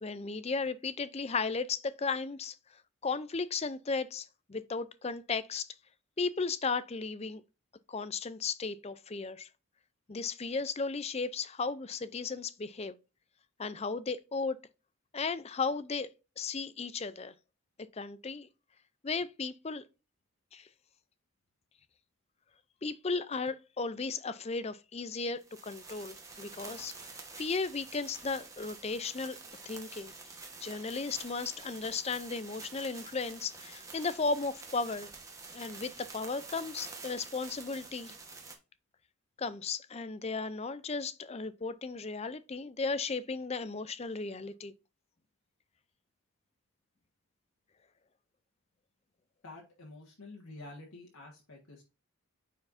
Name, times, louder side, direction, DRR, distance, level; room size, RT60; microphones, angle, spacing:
voice 1, 0.0-5.7 6.2-7.4 7.9-9.5 10.1-13.0 13.6-14.6 15.1-16.1 16.4-17.3 17.9-18.5 19.0-19.8 20.5-20.7 22.8-30.1 30.6-35.1 35.5-38.1 39.4-44.7, left 4 dB, 30° left, 0.5 m, -35 dB
sound 1, 25.4-38.6, right 4 dB, 15° right, 1.2 m, -48 dB
voice 2, 49.4-51.8, left 2 dB, 70° left, 1.7 m, -49 dB
9.6 x 4.6 x 2.6 m
head